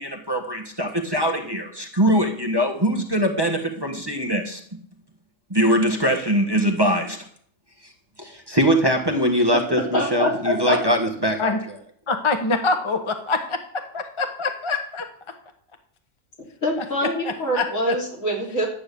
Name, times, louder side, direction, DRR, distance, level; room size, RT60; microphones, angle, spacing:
voice 1, 0.0-4.6 5.5-7.2 7.8-7.9 8.2-11.5, equal, 20° right, 1 dB, 1.3 m, -22 dB
voice 2, 9.7-10.8 16.6-18.7, equal, 75° left, -1 dB, 3.7 m, -24 dB
voice 3, 12.1-13.6 14.2-15.0 17.2-17.9, left 3 dB, 25° left, 6 dB, 0.9 m, -24 dB
11.5 x 8.9 x 6.9 m, 0.64 s
omnidirectional pair, 1.4 m